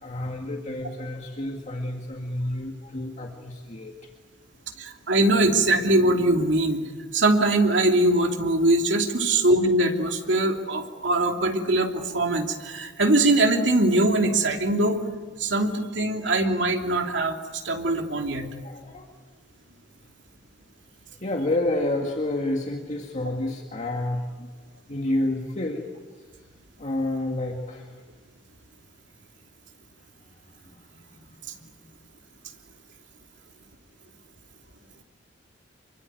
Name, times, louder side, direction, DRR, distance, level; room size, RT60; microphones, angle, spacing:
voice 1, 0.0-3.9 18.6-19.1 21.2-24.5 24.9-25.9 26.8-27.9 31.6-31.7, left 1 dB, 40° left, 1 dB, 2.1 m, -29 dB
voice 2, 4.8-6.8 7.1-15.0 15.4-17.4 17.6-18.5, right 2 dB, 70° right, 3 dB, 3.0 m, -22 dB
27.0 x 24.0 x 9.3 m, 1.4 s
head